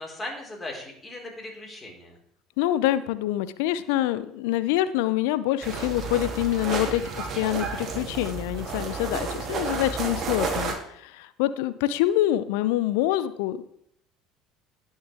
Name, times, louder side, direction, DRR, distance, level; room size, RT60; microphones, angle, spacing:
voice 1, 0.0-2.2, left 2 dB, 20° left, -1 dB, 4.6 m, -38 dB
voice 2, 2.6-13.8, left 13 dB, 65° left, 15 dB, 0.6 m, -26 dB
sound 1, 5.6-10.7, right 4 dB, 40° right, 2.5 m, -31 dB
19.0 x 6.4 x 3.5 m, 0.69 s
figure-of-eight pair, 65°, 0 cm